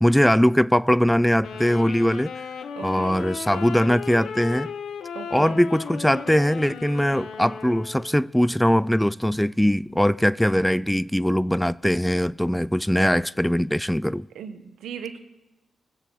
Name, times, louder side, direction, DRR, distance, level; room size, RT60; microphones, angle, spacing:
voice 1, 0.0-2.3 2.8-4.7 5.3-14.3, equal, 5° left, 0.3 m, -21 dB
Wind instrument woodwind instrument, 1.4-8.3, left 6 dB, 75° left, 0.7 m, -36 dB
voice 2, 2.7-3.2 5.1-5.6 14.3-15.2, right 7 dB, 85° right, 1.2 m, -37 dB
23.0 x 7.7 x 3.9 m
supercardioid pair, 55°, 0 cm